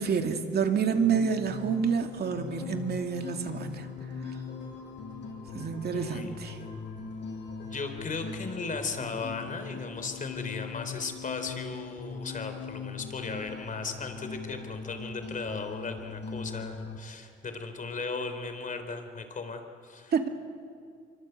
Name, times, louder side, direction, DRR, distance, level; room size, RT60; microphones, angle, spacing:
voice 1, 0.0-3.9 4.2-4.3 5.5-6.6 20.1-20.3, right 6 dB, 55° right, 5 dB, 2.5 m, -28 dB
sound 1, 1.0-17.0, left 5 dB, 60° left, 6.3 m, -40 dB
voice 2, 5.9-6.3 7.6-20.1, left 4 dB, 40° left, 7 dB, 3.8 m, -37 dB
25.5 x 23.5 x 8.1 m, 2.3 s
cardioid pair, 90°, 20 cm